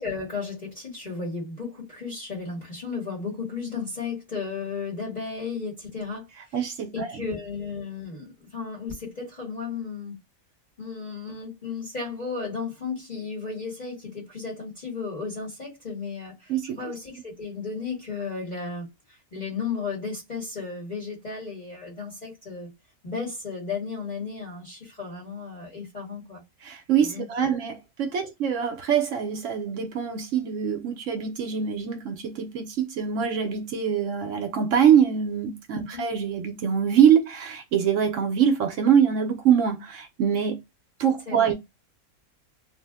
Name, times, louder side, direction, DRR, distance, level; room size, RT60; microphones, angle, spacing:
voice 1, 0.0-6.6 6.9-10.2 10.8-22.7 23.0-26.4 27.0-27.6 35.9-36.0 41.3-41.5, left 5 dB, 35° left, 1.1 m, -34 dB
voice 2, 6.5-7.2 16.5-16.9 26.6-40.6 41.0-41.5, right 8 dB, 65° right, 0.9 m, -24 dB
2.6 x 2.1 x 3.4 m
omnidirectional pair, 1.5 m